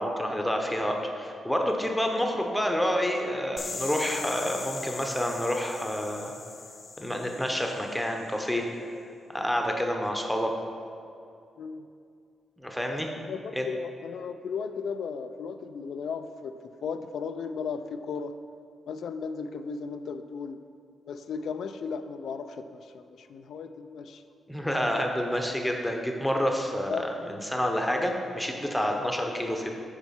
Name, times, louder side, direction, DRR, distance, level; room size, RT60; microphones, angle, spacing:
voice 1, 0.0-6.3 7.0-8.8 9.3-10.5 12.6-13.1 13.5-13.7 24.5-29.7, equal, 5° left, 2 dB, 0.8 m, -28 dB
sound 1, 3.6-8.3, left 4 dB, 45° left, 0.7 m, -40 dB
voice 2, 11.6-11.9 13.2-18.4 18.9-20.6 21.1-24.2 26.9-27.1, left 5 dB, 80° left, 8 dB, 0.3 m, -36 dB
7.1 x 4.4 x 5.7 m, 2.4 s
cardioid pair, 110°, 0 cm